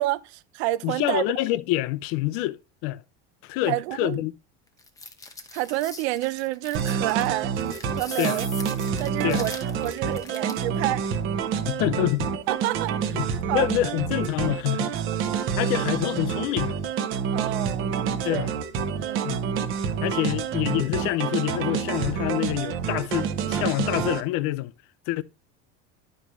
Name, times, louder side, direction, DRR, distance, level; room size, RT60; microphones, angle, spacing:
voice 1, 0.0-1.2 3.7-4.2 5.5-7.5 8.0-8.5 9.0-11.1 12.5-13.2 13.5-13.7 15.6-15.7 17.3-18.0 18.3-18.5 18.9-19.4, right 17 dB, 85° right, 0.6 m, -29 dB
voice 2, 0.8-3.0 3.4-4.3 8.2-8.4 9.2-9.5 11.7-12.3 13.1-14.9 15.6-16.8 18.2-18.5 19.2-19.4 20.0-24.7 25.1-25.2, left 16 dB, 45° left, 0.4 m, -26 dB
sound 1, 4.8-10.7, left 3 dB, 10° left, 0.9 m, -41 dB
sound 2, 6.7-24.2, right 7 dB, 40° right, 0.9 m, -28 dB
11.0 x 5.2 x 3.0 m
cardioid pair, 160°, 32 cm